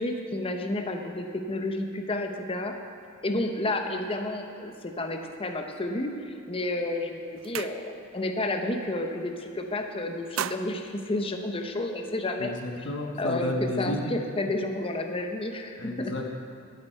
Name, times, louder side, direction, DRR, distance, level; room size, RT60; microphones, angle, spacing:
voice 1, 0.0-2.8 3.2-12.9 13.2-16.1, left 2 dB, 25° left, 4 dB, 0.8 m, -31 dB
sound 1, 6.5-6.8 7.1-8.3 8.6-8.9 9.2-9.7 10.1-11.9, right 10 dB, 65° right, 0.3 m, -38 dB
voice 2, 12.4-14.1 15.8-16.3, left 2 dB, 60° left, 1 dB, 1.2 m, -32 dB
12.5 x 9.3 x 4.4 m, 2.3 s
head